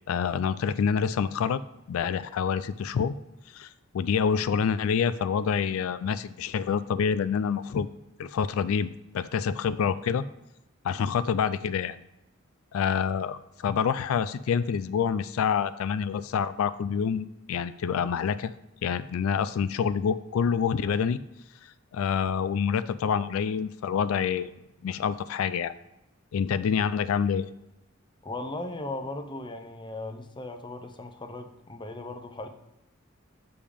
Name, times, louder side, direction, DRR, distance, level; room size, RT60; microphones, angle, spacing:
voice 1, 0.1-1.6 1.9-3.1 3.5-3.7 3.9-7.9 8.2-10.2 10.8-12.0 12.7-18.5 18.8-21.2 21.6-24.5 24.8-25.7 26.3-27.5, left 7 dB, 85° left, 14 dB, 0.3 m, -27 dB
voice 2, 28.2-32.5, left 2 dB, 25° left, 6 dB, 0.7 m, -37 dB
6.9 x 5.4 x 5.0 m, 0.91 s
head